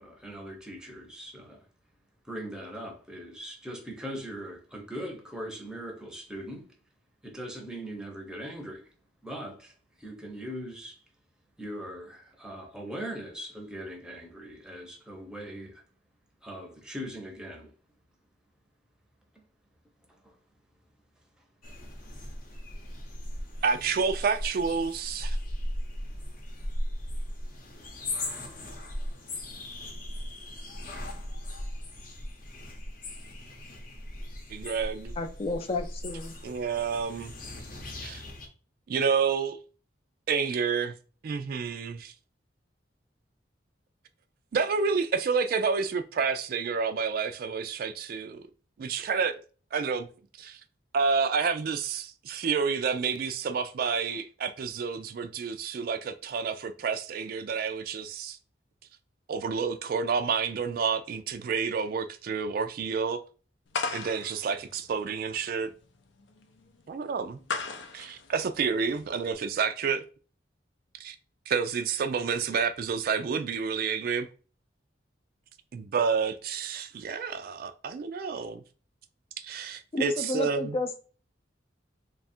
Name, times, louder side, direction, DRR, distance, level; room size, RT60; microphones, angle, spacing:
voice 1, 0.0-1.7 2.2-6.7 7.2-8.9 9.2-11.0 11.6-15.8 16.4-17.7 20.1-20.4, equal, 5° right, 0.7 m, -40 dB
sound 1, 21.6-38.5, left 1 dB, 50° left, 0.8 m, -38 dB
voice 2, 23.6-25.4 34.5-35.1 36.4-37.3 38.0-38.2 38.9-39.6 40.3-40.9 41.2-42.1 44.5-48.5 48.8-49.4 49.7-50.1 50.4-50.6 50.9-58.4 59.3-63.2 63.9-65.7 66.9-67.4 67.9-70.0 70.9-71.2 71.5-74.3 75.7-78.6 79.4-80.8, right 5 dB, 55° right, 0.3 m, -29 dB
voice 3, 35.2-36.3 79.9-81.0, left 2 dB, 30° left, 0.4 m, -31 dB
sound 2, 63.7-69.3, left 4 dB, 85° left, 0.5 m, -37 dB
3.2 x 2.4 x 4.2 m
head